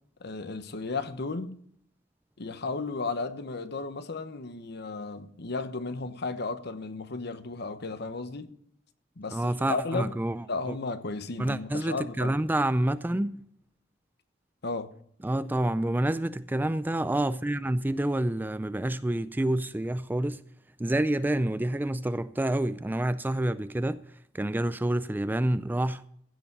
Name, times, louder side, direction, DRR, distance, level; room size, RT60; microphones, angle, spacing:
voice 1, 0.2-1.6 2.4-8.5 9.2-10.1 10.5-12.4 14.6-14.9, left 3 dB, 60° left, 1.0 m, -34 dB
voice 2, 9.3-10.8 11.4-13.4 15.2-20.4 20.8-24.0 24.3-26.0, right 1 dB, 10° right, 0.4 m, -28 dB
15.5 x 7.0 x 5.4 m
head